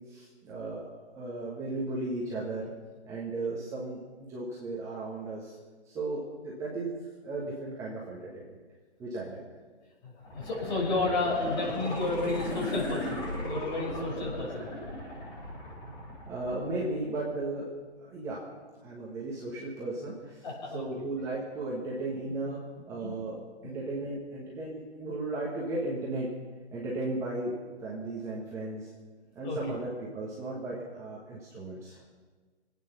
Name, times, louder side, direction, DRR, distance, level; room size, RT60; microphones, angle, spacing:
voice 1, 0.1-0.8 1.1-2.7 3.1-5.6 5.9-6.9 7.2-8.6 9.0-9.4 16.3-17.7 18.1-18.4 18.8-20.4 20.7-22.6 22.9-23.3 23.6-26.3 26.7-27.5 27.8-28.9 29.3-32.0, right 2 dB, 10° right, -5 dB, 1.3 m, -35 dB
voice 2, 10.0-14.7 20.4-20.8 21.8-21.9 23.0-23.2 23.6-23.7 29.4-29.7, left 3 dB, 40° left, -2 dB, 6.1 m, -32 dB
sound 1, 10.2-17.2 17.6-17.7, left 1 dB, 15° left, 3.0 m, -37 dB
24.5 x 9.1 x 6.0 m, 1.4 s
hypercardioid pair, 160°, 35 cm